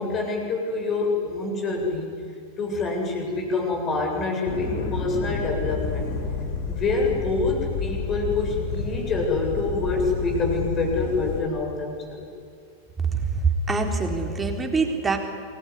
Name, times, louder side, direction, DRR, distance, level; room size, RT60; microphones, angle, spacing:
voice 1, 0.0-2.1 2.6-6.1 6.7-12.2, left 3 dB, 30° left, 1 dB, 7.9 m, -26 dB
sound 1, 4.4-11.4, left 4 dB, 50° left, 5.1 m, -30 dB
voice 2, 13.1-15.2, right 4 dB, 15° right, 3 dB, 3.9 m, -24 dB
27.5 x 20.5 x 9.9 m, 2.4 s
figure-of-eight pair, 90°, 0 cm